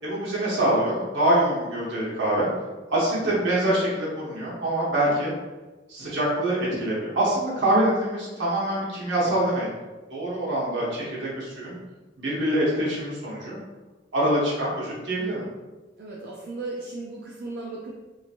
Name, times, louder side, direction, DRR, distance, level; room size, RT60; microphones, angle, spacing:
voice 1, 0.0-2.5 2.9-5.3 5.9-9.7 10.1-11.7 12.2-13.6 14.1-15.4, right 1 dB, 85° right, -6 dB, 1.1 m, -25 dB
voice 2, 16.0-17.9, right 3 dB, 60° right, -4 dB, 0.4 m, -36 dB
2.9 x 2.5 x 2.8 m, 1.2 s
head